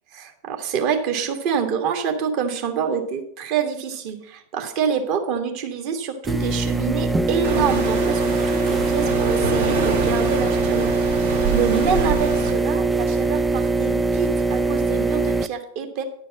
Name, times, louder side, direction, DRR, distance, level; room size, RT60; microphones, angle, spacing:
voice 1, 0.1-10.9 11.5-16.0, right 7 dB, 45° right, 5 dB, 1.5 m, -26 dB
sound 1, 6.2-15.5, right 3 dB, 10° right, 0.4 m, -22 dB
sound 2, 7.4-12.5, right 5 dB, 65° right, 1.7 m, -26 dB
10.5 x 4.5 x 7.3 m, 0.67 s
figure-of-eight pair, 90°, 0 cm